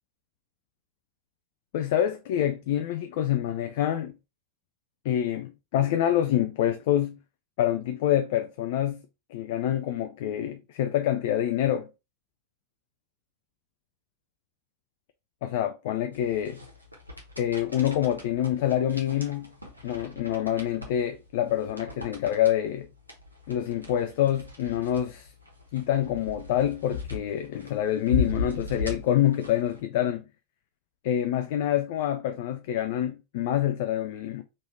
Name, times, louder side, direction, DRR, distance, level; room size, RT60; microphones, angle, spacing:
voice 1, 1.7-4.2 5.0-7.2 7.6-9.0 9.3-11.9 15.4-16.6 17.4-19.5 19.8-22.9 23.5-25.3 25.7-30.2 31.0-34.4, left 11 dB, 50° left, 0.3 m, -26 dB
sound 1, 16.1-29.8, left 4 dB, 85° right, 0.9 m, -37 dB
3.2 x 2.6 x 3.1 m
figure-of-eight pair, 90°, 0 cm